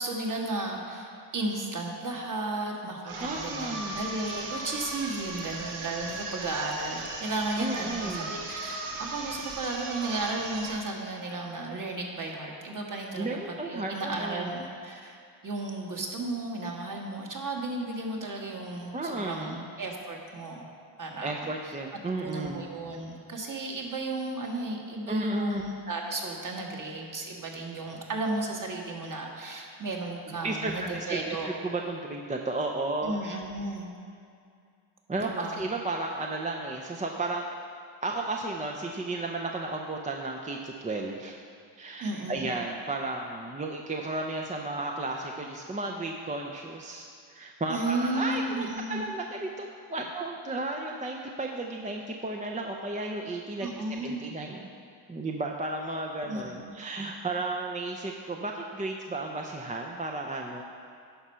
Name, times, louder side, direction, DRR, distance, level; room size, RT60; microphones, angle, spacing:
voice 1, 0.0-15.2 15.4-20.7 21.0-21.3 22.2-31.5 33.0-33.9 35.2-35.6 42.0-42.5 47.7-49.0 53.6-54.2 56.3-56.7, right 2 dB, 40° right, 0 dB, 1.6 m, -34 dB
sound 1, 3.0-10.9, right 3 dB, 90° right, 1.3 m, -37 dB
voice 2, 3.2-4.0 7.6-8.3 13.2-14.6 18.9-19.6 21.2-22.7 25.1-25.6 30.3-31.2 31.4-33.2 35.1-37.5 38.0-41.4 41.8-53.7 54.0-54.7 55.1-60.6, right 2 dB, 15° right, 0 dB, 0.5 m, -33 dB
11.0 x 4.3 x 5.6 m, 2.4 s
cardioid pair, 90°, 48 cm